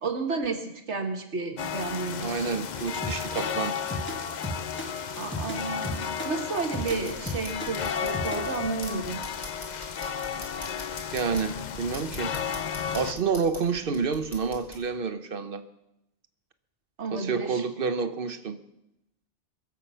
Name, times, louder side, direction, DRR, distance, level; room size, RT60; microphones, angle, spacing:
voice 1, 0.0-2.5 5.2-9.2 17.0-17.6, right 4 dB, 75° right, 5 dB, 1.8 m, -32 dB
sound 1, 1.6-13.1, left 7 dB, 50° left, 0.6 m, -33 dB
voice 2, 2.2-3.7 4.7-4.9 11.1-12.3 12.7-15.6 17.1-18.6, right 5 dB, 50° right, 10 dB, 1.1 m, -29 dB
sound 2, 3.0-8.7, left 1 dB, 10° left, 1.4 m, -35 dB
sound 3, 6.8-14.8, equal, 30° left, 3.1 m, -45 dB
22.5 x 7.6 x 5.6 m, 0.86 s
omnidirectional pair, 1.2 m